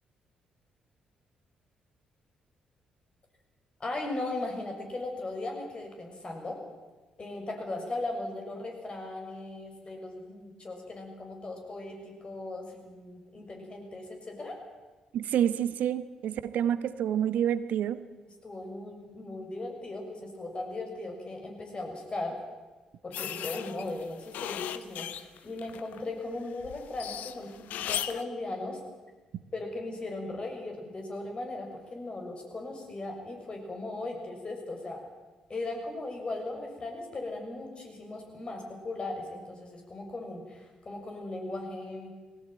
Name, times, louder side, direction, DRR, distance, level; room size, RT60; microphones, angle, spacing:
voice 1, 3.8-6.6 7.2-14.6 18.4-22.4 23.0-28.8 29.5-35.0 35.5-42.1, left 2 dB, 35° left, 2 dB, 6.4 m, -38 dB
voice 2, 15.1-18.0, right 10 dB, 65° right, 14 dB, 1.1 m, -28 dB
sound 1, 23.1-26.0 26.4-28.2, left 11 dB, 70° left, 0.9 m, -37 dB
20.0 x 17.5 x 9.2 m, 1.3 s
hypercardioid pair, 45°, 3 cm